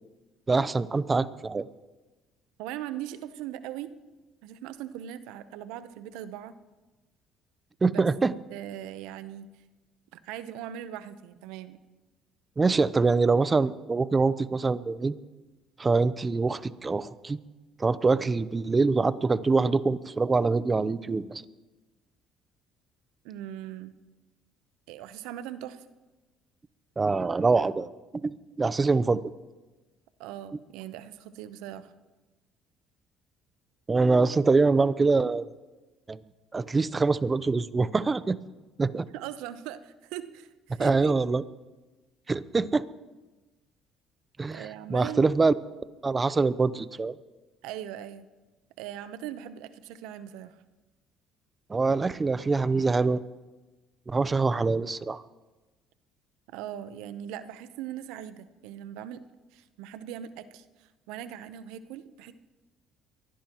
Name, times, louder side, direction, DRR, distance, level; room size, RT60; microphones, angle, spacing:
voice 1, 0.5-1.7 7.8-8.3 12.6-15.2 15.8-17.4 17.8-21.4 27.0-27.9 28.2-29.2 33.9-35.4 36.1-36.2 36.5-38.4 38.8-39.1 40.8-41.4 42.3-42.8 44.4-45.5 46.0-47.1 51.7-53.2 54.1-55.2, right 4 dB, 25° right, 16 dB, 0.7 m, -24 dB
voice 2, 2.6-3.9 4.4-6.5 7.9-8.0 8.5-9.5 10.1-11.8 23.2-24.0 24.9-25.9 30.2-31.9 39.1-41.2 44.5-45.3 47.6-48.3 48.8-50.6 56.5-59.2 59.5-62.3, right 11 dB, 80° right, 12 dB, 0.9 m, -40 dB
23.5 x 16.5 x 3.1 m, 1.2 s
supercardioid pair, 65°, 0 cm